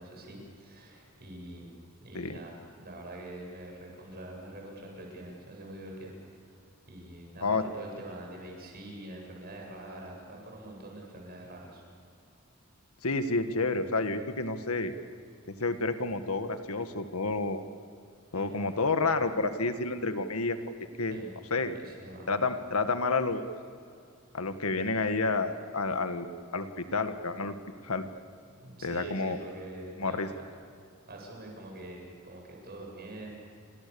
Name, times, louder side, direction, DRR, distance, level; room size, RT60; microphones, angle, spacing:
voice 1, 0.0-1.7 2.0-6.1 6.4-6.5 6.9-11.8 18.3-18.7 21.1-21.3 21.7-22.3 28.6-30.4 31.1-33.4, right 1 dB, 45° right, 0 dB, 8.0 m, -45 dB
voice 2, 13.0-14.9 15.6-17.6 18.3-20.6 21.0-21.2 21.5-21.7 22.3-23.5 24.3-26.3 26.5-27.5 27.8-28.1 28.8-29.4 30.0-30.3, left 3 dB, 85° left, 8 dB, 1.7 m, -29 dB
29.0 x 25.5 x 7.1 m, 2.4 s
head